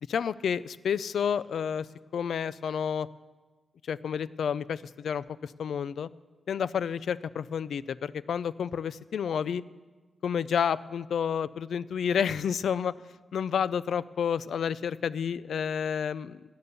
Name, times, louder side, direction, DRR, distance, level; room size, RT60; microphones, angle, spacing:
voice 1, 0.1-1.9 2.1-3.1 3.8-6.1 6.5-9.6 10.2-13.0 13.3-16.4, left 7 dB, 80° left, 18 dB, 0.4 m, -30 dB
18.0 x 11.5 x 6.8 m, 1.3 s
wide cardioid pair, 135°, 0 cm